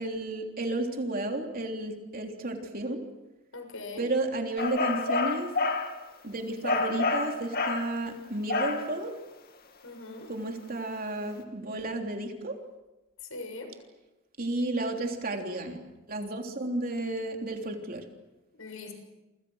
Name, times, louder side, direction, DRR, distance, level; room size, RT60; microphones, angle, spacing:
voice 1, 0.0-3.0 4.0-5.5 6.2-9.1 10.3-12.6 14.4-15.8 16.1-18.1, right 2 dB, 45° right, 3 dB, 3.4 m, -32 dB
voice 2, 3.5-4.1 9.8-10.3 13.3-13.7 18.5-18.9, left 3 dB, 90° left, 5 dB, 6.8 m, -41 dB
sound 1, 4.6-5.9 6.6-7.9 8.5-8.9, left 3 dB, 50° left, 2.3 m, -28 dB
28.5 x 26.0 x 6.4 m, 1.0 s
head